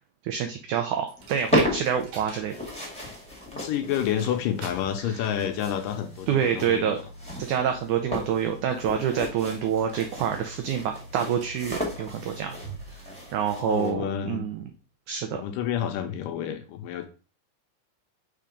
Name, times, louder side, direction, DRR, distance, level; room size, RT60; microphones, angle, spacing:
voice 1, 0.2-2.5 5.0-5.2 6.3-7.0 7.4-12.5 13.0-13.1 13.3-14.6 15.1-15.4, right 8 dB, 80° right, 5 dB, 1.8 m, -27 dB
Coin (dropping), 1.1-14.8, right 1 dB, 60° right, 2.6 m, -47 dB
sound 1, 1.2-13.9, left 1 dB, 5° left, 0.9 m, -35 dB
voice 2, 3.5-6.9 13.6-14.4 15.3-17.1, left 9 dB, 80° left, 7 dB, 2.1 m, -29 dB
5.7 x 3.7 x 5.1 m, 0.36 s
omnidirectional pair, 4.2 m